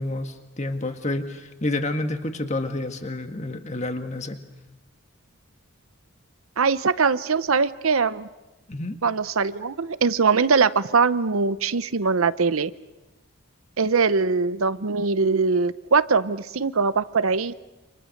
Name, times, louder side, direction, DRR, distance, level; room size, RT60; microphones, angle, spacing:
voice 1, 0.0-4.4 8.7-9.0, left 2 dB, 30° left, 6 dB, 1.7 m, -29 dB
voice 2, 6.6-8.3 9.0-12.7 13.8-17.5, right 4 dB, 75° right, 15 dB, 0.8 m, -22 dB
29.0 x 26.5 x 6.6 m, 1.1 s
head